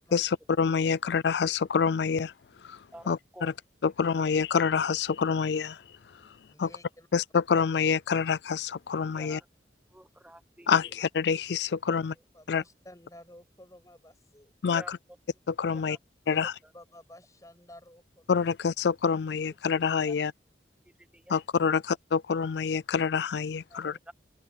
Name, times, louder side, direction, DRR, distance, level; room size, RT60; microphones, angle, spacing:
voice 1, 0.1-2.3 2.6-2.8 3.1-3.5 3.8-5.8 6.6-6.7 7.1-9.4 10.7-12.1 12.5-12.6 14.6-15.0 15.5-16.0 16.3-16.5 18.3-20.3 21.3-23.9, left 6 dB, 70° left, 0.4 m, -27 dB
voice 2, 2.9-3.5 9.1-9.5 9.9-10.9 14.7-14.9 15.7-16.0 20.1-20.2 21.0-21.4 21.7-21.8 24.1-24.2, right 1 dB, 5° right, 1.2 m, -49 dB
voice 3, 6.5-7.1 11.9-12.0 12.3-14.5 16.2-18.5 23.7-24.0, left 1 dB, 20° left, 7.0 m, -52 dB
open air
head